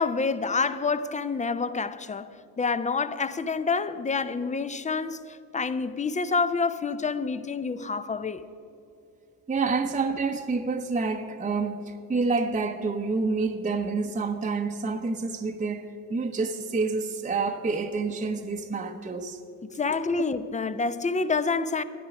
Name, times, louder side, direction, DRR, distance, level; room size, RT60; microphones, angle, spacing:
voice 1, 0.0-2.3 2.6-8.5 19.8-21.8, left 4 dB, 15° left, 0.6 m, -27 dB
voice 2, 9.5-19.4, right 4 dB, 15° right, 0.8 m, -28 dB
14.0 x 11.0 x 4.8 m
hypercardioid pair, 50°, 48 cm